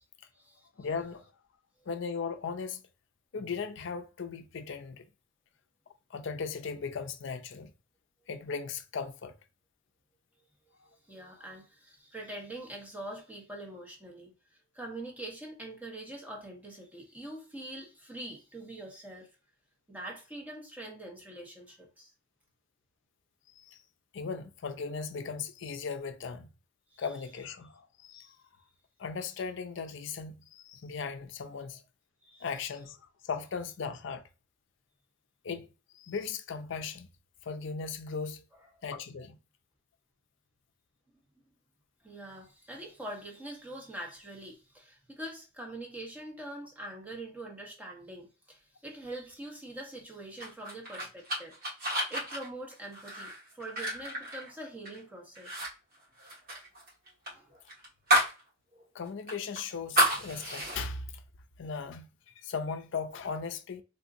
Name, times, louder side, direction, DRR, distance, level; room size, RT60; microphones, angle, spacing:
voice 1, 0.8-1.3 1.9-2.8 3.3-5.1 6.1-7.7 8.3-9.3 23.6-23.8 24.1-26.5 27.0-28.4 29.0-31.8 32.4-34.2 35.4-35.7 35.9-37.1 37.4-38.4 38.8-39.4 58.9-61.2 61.6-62.1 62.4-63.8, left 5 dB, 65° left, 0.5 m, -37 dB
voice 2, 11.1-14.3 14.7-19.3 19.9-22.1 26.9-27.0 28.1-28.3 32.2-32.5 38.7-38.8 42.0-51.5 52.1-55.7 57.3-57.5, right 1 dB, 10° right, 1.1 m, -44 dB
sound 1, 50.4-55.0 55.3-55.7 55.9-58.4 58.7-58.8 59.3-60.8, right 1 dB, 50° right, 1.6 m, -30 dB
3.7 x 2.7 x 2.5 m
head